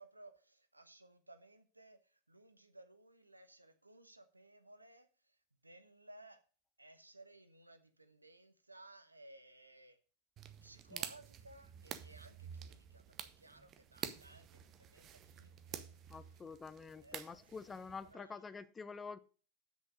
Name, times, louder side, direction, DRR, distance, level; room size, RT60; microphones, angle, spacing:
voice 1, 0.0-6.4 6.8-10.0 10.6-16.4 17.0-18.6, right 2 dB, 85° right, 1.0 m, -60 dB
sound 1, 10.4-18.1, right 9 dB, 30° right, 0.8 m, -49 dB
voice 2, 16.1-19.2, left 5 dB, 15° left, 0.5 m, -48 dB
7.8 x 6.3 x 6.3 m
figure-of-eight pair, 90°, 0 cm